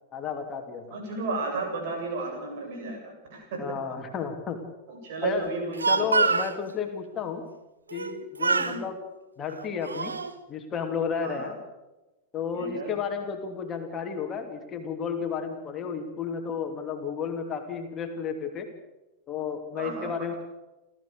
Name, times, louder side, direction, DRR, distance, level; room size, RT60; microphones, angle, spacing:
voice 1, 0.1-1.0 3.6-4.6 5.2-5.5 5.9-7.4 7.9-9.0 9.4-10.1 10.5-11.6 12.3-18.7 19.3-20.3, left 6 dB, 25° left, 4 dB, 2.7 m, -32 dB
voice 2, 0.9-3.6 4.9-6.3 8.4-8.8 11.2-11.5 12.5-13.0 19.8-20.4, right 3 dB, 50° right, 3 dB, 7.7 m, -33 dB
Speech, 5.5-6.6 7.9-8.1 8.4-8.8 9.5-10.3, right 4 dB, 75° right, 1.2 m, -26 dB
30.0 x 13.5 x 6.7 m, 1.0 s
figure-of-eight pair, 90°, 0 cm